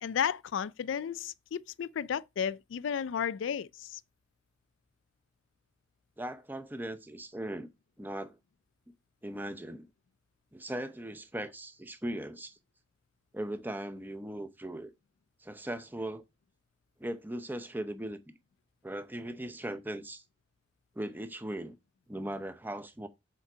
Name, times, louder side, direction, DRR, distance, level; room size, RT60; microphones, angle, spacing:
voice 1, 0.0-4.0, left 8 dB, 65° left, 0.3 m, -33 dB
voice 2, 6.2-7.7 8.0-8.4 9.2-9.9 10.5-12.6 13.3-14.9 15.4-16.2 17.0-18.2 18.8-20.2 21.0-21.8 22.1-23.1, right 1 dB, 10° right, 0.6 m, -38 dB
7.1 x 4.5 x 4.9 m
head